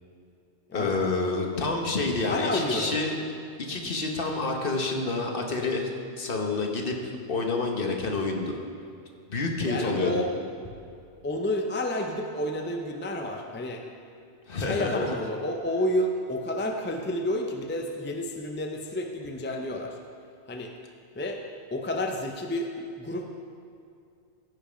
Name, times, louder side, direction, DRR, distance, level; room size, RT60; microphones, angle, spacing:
voice 1, 0.7-3.2 3.6-5.9 6.2-6.9 7.3-8.6 9.3-10.2 14.5-15.0, left 3 dB, 55° left, 2 dB, 1.2 m, -28 dB
voice 2, 2.1-3.0 9.6-10.3 11.2-13.8 14.6-20.0 20.5-20.7 21.1-21.4 21.7-23.2, left 1 dB, 15° left, 3 dB, 0.5 m, -30 dB
15.5 x 5.4 x 5.1 m, 2.5 s
omnidirectional pair, 1.1 m